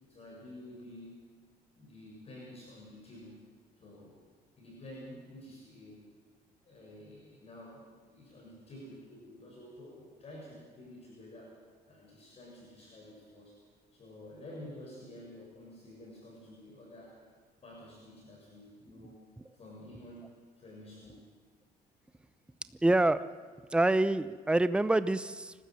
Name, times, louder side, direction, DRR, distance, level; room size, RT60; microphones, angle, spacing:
voice 1, 0.0-1.2 1.8-3.5 3.8-4.2 4.6-6.1 6.6-11.6 11.9-13.6 13.9-17.3 17.6-19.2 19.5-21.3, left 1 dB, 35° left, -3 dB, 7.1 m, -50 dB
voice 2, 22.8-23.3 23.7-25.5, right 2 dB, 5° right, 13 dB, 0.7 m, -26 dB
29.0 x 13.0 x 7.7 m, 1.5 s
cardioid pair, 110°, 17 cm